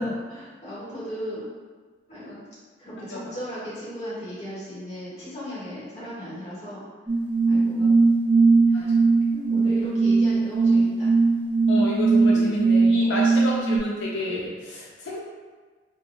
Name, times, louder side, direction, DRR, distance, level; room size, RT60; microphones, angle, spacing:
voice 1, 0.0-1.5 2.1-2.4 2.8-6.8 7.5-7.9 8.7-8.9 9.3-11.1 12.3-12.5 13.0-13.1, equal, 40° left, -9 dB, 1.0 m, -36 dB
sound 1, 7.1-13.8, right 4 dB, 15° right, 0.8 m, -19 dB
voice 2, 8.7-9.1 11.7-15.2, left 1 dB, 80° left, -3 dB, 0.3 m, -29 dB
3.0 x 2.2 x 2.5 m, 1.4 s
head